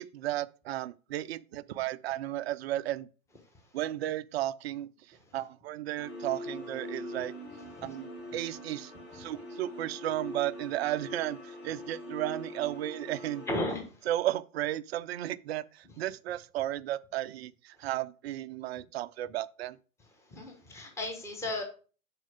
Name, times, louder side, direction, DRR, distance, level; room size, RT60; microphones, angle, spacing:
voice 1, 0.0-3.1 3.7-7.3 7.8-13.5 14.1-19.8, right 14 dB, 50° right, 0.4 m, -34 dB
sound 1, 6.0-13.6, left 1 dB, 35° left, 2.6 m, -43 dB
voice 2, 13.5-14.1 20.3-21.6, left 1 dB, 5° left, 1.2 m, -35 dB
6.3 x 4.6 x 4.9 m
hypercardioid pair, 120°, 43 cm